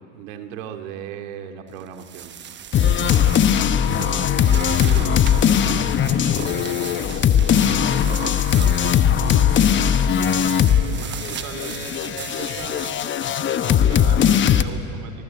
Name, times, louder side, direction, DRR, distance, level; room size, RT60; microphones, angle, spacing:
voice 1, 0.0-2.3 9.3-9.6, right 9 dB, 70° right, 5 dB, 2.5 m, -36 dB
sound 1, 1.8-14.3, right 8 dB, 25° right, 1.0 m, -37 dB
sound 2, 2.7-10.9 11.2-14.6, left 9 dB, 30° left, 1.0 m, -19 dB
voice 2, 3.6-8.8 10.2-12.9 13.4-15.2, right 6 dB, 50° right, 7 dB, 3.7 m, -39 dB
24.5 x 20.0 x 8.6 m, 2.6 s
hypercardioid pair, 105°, 40 cm